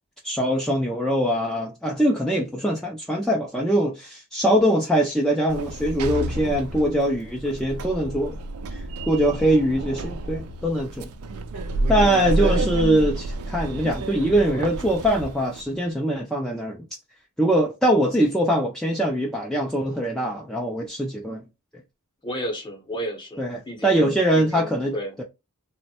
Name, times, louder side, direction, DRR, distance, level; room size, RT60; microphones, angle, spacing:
voice 1, 0.2-8.4 8.7-11.1 11.9-16.8 17.4-21.4 23.4-25.2, right 1 dB, ahead, 0.3 m, -22 dB
Sliding door, 5.5-15.6, right 2 dB, 75° right, 0.4 m, -29 dB
voice 2, 22.2-25.2, equal, 20° left, 0.7 m, -33 dB
3.0 x 2.1 x 2.8 m
head